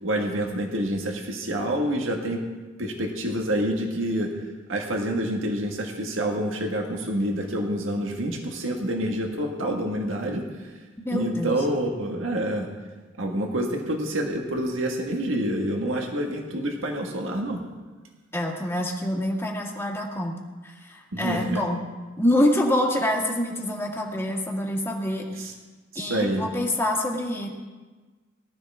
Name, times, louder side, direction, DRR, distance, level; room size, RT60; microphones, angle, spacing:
voice 1, 0.0-2.4 2.8-4.3 4.7-10.7 11.1-12.7 13.2-17.6 21.1-21.6 25.4-25.5 25.9-26.4, right 1 dB, 80° right, 2 dB, 1.6 m, -27 dB
voice 2, 11.0-11.6 18.3-21.8 22.2-25.3 26.0-27.5, left 1 dB, 10° left, -1 dB, 1.7 m, -26 dB
19.0 x 12.5 x 3.5 m, 1.3 s
head